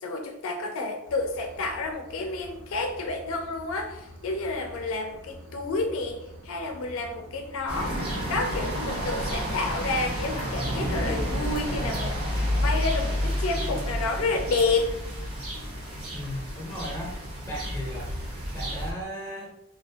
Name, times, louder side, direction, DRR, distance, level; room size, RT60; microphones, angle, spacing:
voice 1, 0.0-6.2 6.4-8.0 8.3-14.9, left 3 dB, 70° left, 4 dB, 0.4 m, -30 dB
sound 1, 1.0-19.0, equal, 70° right, 0.5 m, -47 dB
sound 2, 7.7-18.9, equal, 90° right, 0.9 m, -30 dB
voice 2, 16.1-17.2 17.5-18.1 18.5-19.5, equal, 10° left, -3 dB, 0.5 m, -36 dB
2.7 x 2.0 x 2.7 m, 0.85 s
head